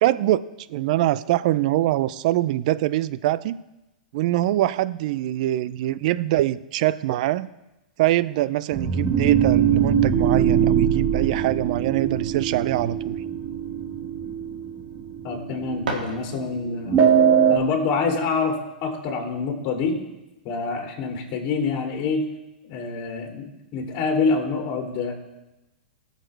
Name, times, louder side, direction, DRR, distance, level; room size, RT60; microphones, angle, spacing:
voice 1, 0.0-0.4 0.7-3.6 4.1-7.5 8.0-13.2, right 15 dB, 55° right, 17 dB, 0.5 m, -23 dB
sound 1, 8.7-16.0 16.9-17.6, right 8 dB, 30° right, 1.4 m, -21 dB
voice 2, 15.2-17.0 17.5-20.0 20.4-22.2 22.7-25.1, left 4 dB, 40° left, 1 dB, 2.6 m, -26 dB
sound 2, 15.3-16.8, right 3 dB, 85° right, 2.2 m, -34 dB
19.5 x 6.7 x 3.3 m, 0.98 s
hypercardioid pair, 115°, 5 cm